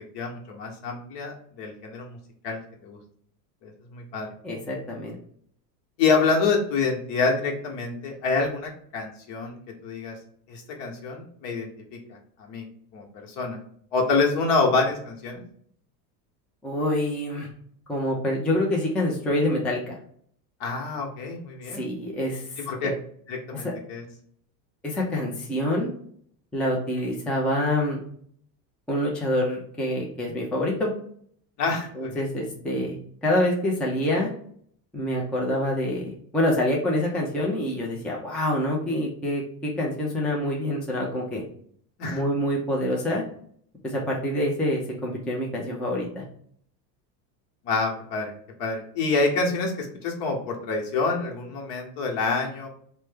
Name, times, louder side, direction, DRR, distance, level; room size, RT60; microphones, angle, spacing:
voice 1, 0.1-2.2 2.4-3.0 3.6-4.3 6.0-9.5 9.8-10.1 10.5-12.6 12.9-13.6 13.9-15.4 20.6-21.8 22.7-22.9 23.3-24.0 31.6-32.2 42.0-42.2 47.6-48.3 48.6-52.7, left 4 dB, 55° left, 1 dB, 1.0 m, -27 dB
voice 2, 4.4-5.2 16.6-17.5 17.9-20.0 21.7-22.9 23.5-23.7 24.8-25.9 26.5-28.0 28.9-30.9 31.9-33.0 33.2-34.3 34.9-41.4 42.1-43.2 43.8-46.2, left 1 dB, ahead, -2 dB, 0.4 m, -26 dB
3.1 x 2.1 x 3.4 m, 0.62 s
supercardioid pair, 105°, 50 cm